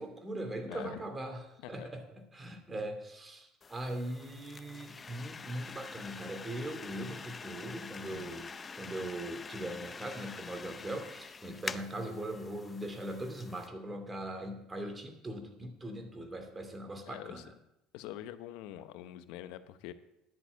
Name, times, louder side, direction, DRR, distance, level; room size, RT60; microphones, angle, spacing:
voice 1, 0.0-1.4 1.7-8.4 8.7-17.5, right 1 dB, 20° right, 6 dB, 2.5 m, -40 dB
voice 2, 0.7-1.0 1.6-1.9 8.1-8.4 17.1-17.5 17.9-19.9, left 12 dB, 75° left, 12 dB, 0.8 m, -45 dB
sound 1, 3.6-13.7, left 5 dB, 30° left, 0.5 m, -46 dB
11.0 x 6.1 x 8.1 m, 0.83 s
hypercardioid pair, 75°, 0 cm